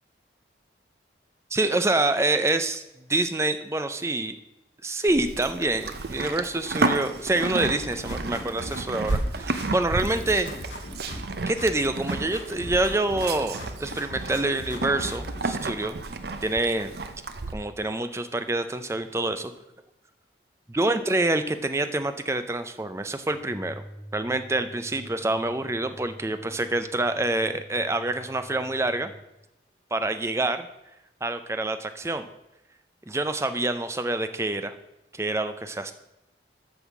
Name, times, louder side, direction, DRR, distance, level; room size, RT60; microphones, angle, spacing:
voice 1, 1.5-2.8 3.1-4.4 4.8-10.5 11.5-16.0 16.4-16.9 17.5-19.5 20.7-23.8 24.1-29.1 29.9-30.7 31.2-32.3 33.1-34.7 35.1-35.9, right 2 dB, 15° right, 9 dB, 0.5 m, -26 dB
Livestock farm animals working animals, 5.1-17.5, right 3 dB, 60° right, 0.6 m, -32 dB
sound 1, 7.6-9.3 9.6-11.3 11.6-13.3 13.6-15.5, left 1 dB, 75° left, 2.2 m, -39 dB
sound 2, 23.3-29.3, right 1 dB, 55° left, 3.0 m, -47 dB
8.0 x 5.6 x 7.2 m, 0.91 s
head